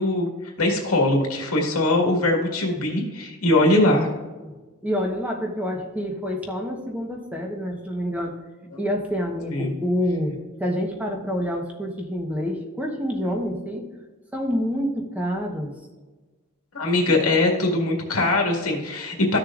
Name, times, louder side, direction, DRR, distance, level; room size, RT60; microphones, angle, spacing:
voice 1, 0.0-4.1 8.7-8.8 9.5-9.7 16.7-19.4, left 2 dB, 85° left, 0 dB, 1.9 m, -21 dB
voice 2, 4.8-8.4 8.8-13.9 14.3-15.8, equal, 5° right, 1 dB, 1.0 m, -27 dB
14.0 x 6.5 x 2.5 m, 1.3 s
head